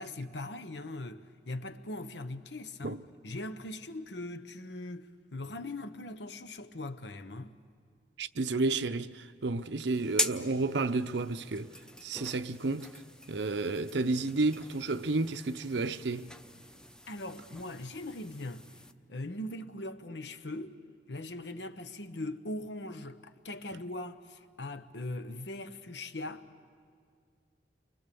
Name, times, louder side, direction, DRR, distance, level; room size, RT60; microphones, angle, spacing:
voice 1, 0.0-3.0 3.2-7.5 17.1-18.6 19.1-20.8 21.1-26.4, left 2 dB, 85° left, 1.1 m, -40 dB
voice 2, 8.2-11.8 12.0-13.0 13.3-16.3, right 3 dB, 80° right, 0.7 m, -31 dB
sound 1, 9.9-18.9, left 1 dB, 5° left, 0.7 m, -41 dB
29.5 x 24.0 x 6.9 m
head